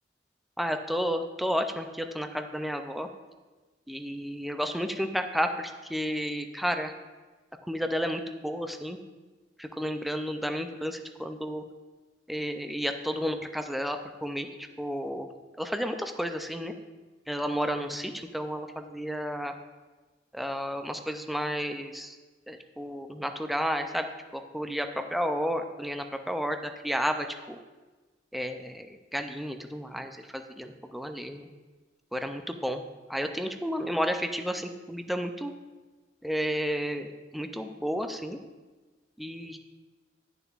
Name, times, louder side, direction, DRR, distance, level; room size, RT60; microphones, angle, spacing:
voice 1, 0.6-3.1 3.9-6.9 7.6-9.0 9.6-11.6 12.3-15.3 15.6-16.7 17.3-19.5 20.3-22.2 22.5-24.1 24.3-24.9 25.1-27.6 28.3-31.5 32.1-32.8 33.1-35.5 36.2-38.4 39.2-39.6, equal, ahead, 6 dB, 0.3 m, -32 dB
8.9 x 6.7 x 2.4 m, 1.3 s
head